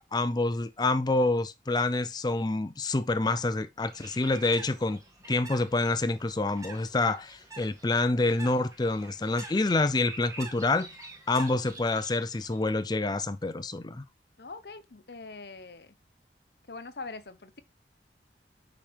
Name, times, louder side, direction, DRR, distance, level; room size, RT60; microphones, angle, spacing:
voice 1, 0.0-5.0 5.3-10.9 11.3-14.0, left 2 dB, 25° left, 0.4 m, -27 dB
Bird, 3.8-12.6, right 2 dB, 20° right, 1.9 m, -47 dB
voice 2, 14.4-16.0 16.7-17.6, left 3 dB, 65° left, 0.9 m, -43 dB
8.6 x 5.0 x 3.4 m
head